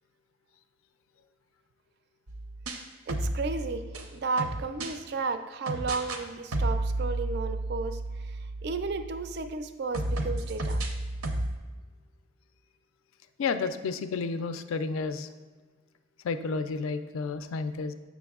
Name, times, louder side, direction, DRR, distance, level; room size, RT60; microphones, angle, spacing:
sound 1, 2.3-5.0 5.7-6.2 6.5-9.5 9.9-11.6, right 2 dB, 90° right, 0.6 m, -32 dB
voice 1, 3.1-3.8 4.1-10.9, right 4 dB, 50° right, 9 dB, 0.3 m, -33 dB
voice 2, 13.4-15.3 16.2-17.9, left 4 dB, 75° left, 11 dB, 0.3 m, -31 dB
6.9 x 5.9 x 2.3 m, 1.4 s
head